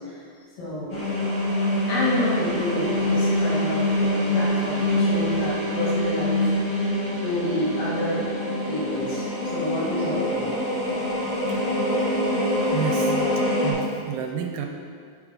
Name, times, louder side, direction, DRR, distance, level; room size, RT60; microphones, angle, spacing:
voice 1, 0.6-1.2 1.9-7.0 7.2-8.2 8.7-10.5, left 1 dB, 80° left, -9 dB, 3.6 m, -29 dB
sound 1, 0.9-13.7, left 1 dB, 40° left, 2.0 m, -25 dB
voice 2, 12.7-13.2 13.6-14.7, right 7 dB, 85° right, 3 dB, 2.3 m, -30 dB
8.0 x 6.4 x 3.8 m, 2.1 s
omnidirectional pair, 4.1 m